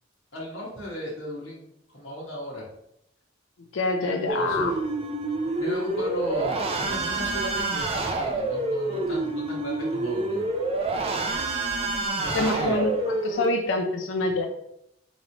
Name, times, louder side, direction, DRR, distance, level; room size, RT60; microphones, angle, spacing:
voice 1, 0.3-2.6 4.0-4.7 5.6-10.4 12.2-12.8, equal, 85° left, -5 dB, 1.3 m, -35 dB
voice 2, 3.7-4.7 12.3-14.5, left 2 dB, 70° left, 4 dB, 0.5 m, -26 dB
sound 1, 4.3-13.5, right 2 dB, 30° right, 0.4 m, -28 dB
4.1 x 3.1 x 2.9 m, 0.77 s
head